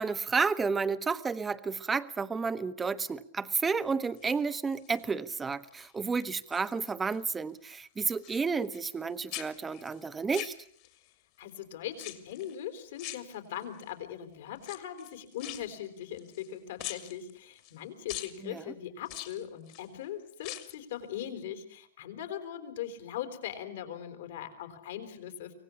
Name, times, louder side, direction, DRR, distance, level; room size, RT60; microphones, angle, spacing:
voice 1, 0.0-10.5 18.4-18.6, right 5 dB, 15° right, 1.1 m, -31 dB
sound 1, 4.1-5.0 5.5-5.9 6.2-7.2 7.5-9.0 9.3-11.1 11.9-12.6 13.0-13.8 14.6-16.5 16.8-17.8 18.1-18.4 19.1-19.9 20.3-20.8 21.2-21.3, left 17 dB, 50° left, 2.6 m, -44 dB
voice 2, 11.4-25.5, left 10 dB, 70° left, 4.1 m, -40 dB
25.0 x 18.0 x 8.5 m
hypercardioid pair, 120°, 0 cm